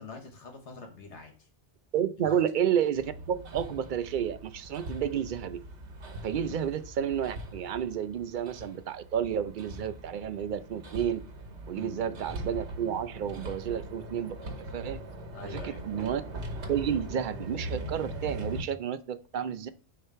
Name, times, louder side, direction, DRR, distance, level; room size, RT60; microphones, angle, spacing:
voice 1, 0.0-1.3 2.2-2.4 6.4-6.6 11.7-12.2 15.3-16.0, left 4 dB, 85° left, 1.5 m, -45 dB
voice 2, 1.9-5.6 6.2-11.3 11.7-14.4 14.7-15.0 15.4-16.2 16.7-19.7, right 9 dB, 60° right, 0.6 m, -31 dB
Hammer, 2.9-18.6, right 1 dB, 80° right, 1.3 m, -41 dB
6.6 x 2.9 x 5.5 m
omnidirectional pair, 1.2 m